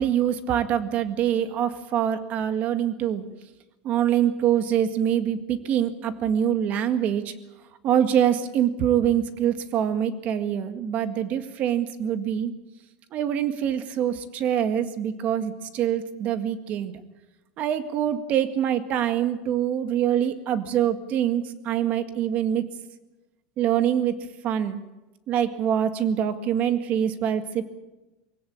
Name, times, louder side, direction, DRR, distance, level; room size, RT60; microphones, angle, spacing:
voice 1, 0.0-3.2 3.8-7.3 7.8-12.5 13.1-16.9 17.6-22.7 23.6-24.2 24.4-24.8 25.3-27.6, right 9 dB, 40° right, 9 dB, 1.8 m, -24 dB
24.0 x 16.5 x 8.7 m, 1.1 s
supercardioid pair, 155°, 4 cm